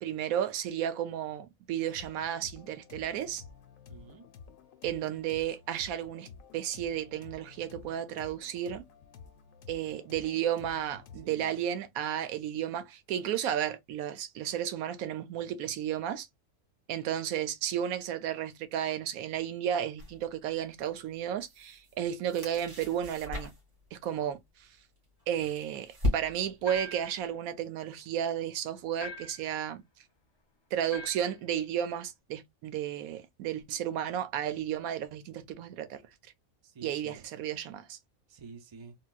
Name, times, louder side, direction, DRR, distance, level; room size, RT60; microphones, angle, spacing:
voice 1, 0.0-3.4 4.8-6.3 6.5-8.8 9.7-16.3 16.9-23.5 23.9-24.7 25.3-29.8 30.7-36.0 36.8-38.0, right 10 dB, 85° right, 1.1 m, -33 dB
sound 1, 1.8-11.3, left 6 dB, 75° left, 1.0 m, -52 dB
voice 2, 3.9-4.3 11.2-11.6 36.6-37.2 38.3-39.0, right 4 dB, 30° right, 0.5 m, -49 dB
sound 2, 20.0-20.2 21.2-22.0 22.2-23.8 25.0-26.6, left 2 dB, 65° right, 2.0 m, -36 dB
sound 3, 26.7-27.2 29.0-29.5 30.9-31.3, equal, 45° left, 0.3 m, -42 dB
3.8 x 2.3 x 2.2 m
omnidirectional pair, 1.4 m